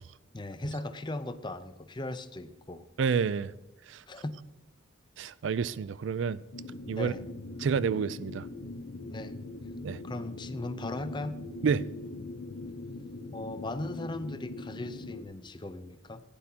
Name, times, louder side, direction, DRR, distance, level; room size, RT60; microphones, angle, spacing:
voice 1, 0.3-2.8 4.1-4.3 6.9-7.2 9.1-9.3 10.0-11.4 13.3-16.2, left 2 dB, 25° left, 0.6 m, -38 dB
voice 2, 3.0-3.5 3.9-4.0 5.2-6.4 6.9-7.1 7.6-8.5 9.8-10.0 11.6-11.9, right 6 dB, 65° right, 0.4 m, -29 dB
sound 1, 6.5-15.2, left 2 dB, 70° left, 0.8 m, -41 dB
15.0 x 9.9 x 2.8 m
head